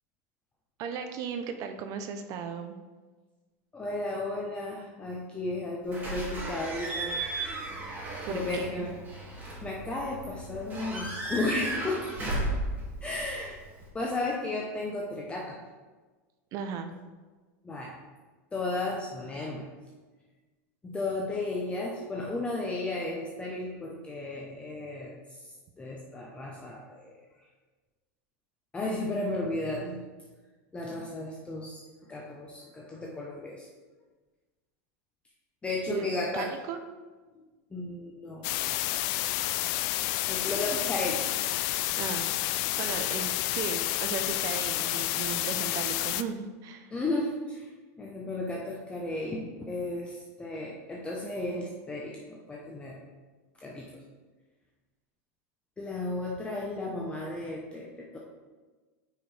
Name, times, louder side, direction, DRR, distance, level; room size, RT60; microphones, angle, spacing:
voice 1, 0.8-2.8 8.3-8.9 16.5-16.9 35.9-36.1 36.3-36.8 42.0-42.3 42.8-46.9, right 6 dB, 45° right, 7 dB, 0.6 m, -36 dB
voice 2, 3.7-7.2 8.3-8.9 9.6-12.1 13.0-13.6 13.9-15.6 17.6-18.0 18.5-19.7 20.8-27.5 28.7-30.0 30.7-33.7 35.6-36.6 37.3-37.4 37.7-38.5 40.3-41.2 46.9-47.7 48.0-53.0 53.5-54.0 55.8-58.2, left 2 dB, 15° left, -2 dB, 0.8 m, -34 dB
Slam / Squeak / Alarm, 5.9-13.9, right 2 dB, 20° right, 2.3 m, -35 dB
sound 1, 38.4-46.2, left 15 dB, 55° left, 0.4 m, -30 dB
9.1 x 5.0 x 3.3 m, 1.3 s
supercardioid pair, 135°, 8 cm